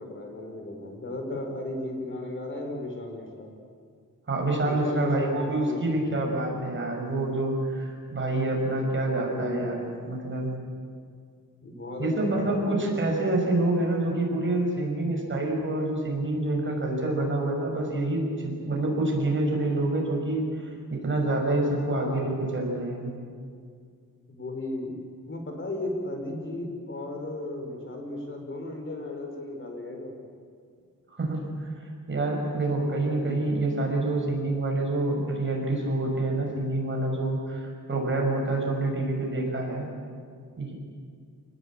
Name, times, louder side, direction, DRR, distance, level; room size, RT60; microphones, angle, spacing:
voice 1, 0.0-3.5 4.6-6.6 9.2-9.8 11.6-13.0 22.0-22.3 24.3-25.0 25.3-30.1 33.0-33.5, left 1 dB, 35° left, 2 dB, 4.6 m, -35 dB
voice 2, 4.3-10.5 12.0-23.1 31.1-39.9 40.6-40.7, right 2 dB, 35° right, 0 dB, 6.2 m, -27 dB
29.0 x 19.5 x 8.7 m, 2.1 s
wide cardioid pair, 145°, 34 cm